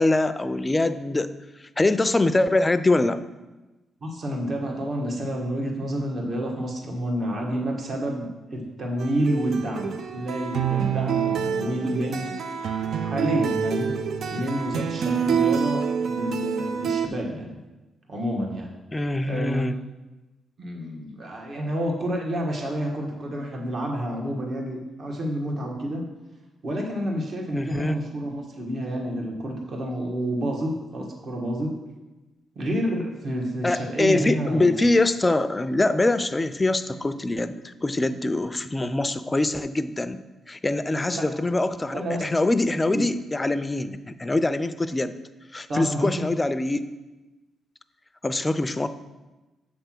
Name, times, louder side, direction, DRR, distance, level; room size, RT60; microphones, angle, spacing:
voice 1, 0.0-1.3 1.6-3.2 18.9-19.8 27.5-28.0 33.6-45.2 45.5-46.8 48.2-48.9, left 2 dB, 20° left, 12 dB, 0.4 m, -24 dB
voice 2, 4.0-12.3 13.0-13.9 14.3-17.6 18.1-18.7 19.2-19.7 20.6-26.0 26.6-31.8 32.5-34.8 40.9-41.3 41.9-42.3 42.9-43.0 45.7-46.2, equal, 55° right, 0 dB, 1.5 m, -29 dB
sound 1, 9.0-17.1, right 7 dB, 70° right, 0.4 m, -27 dB
7.4 x 3.4 x 5.9 m, 1.1 s
cardioid pair, 80°, 0 cm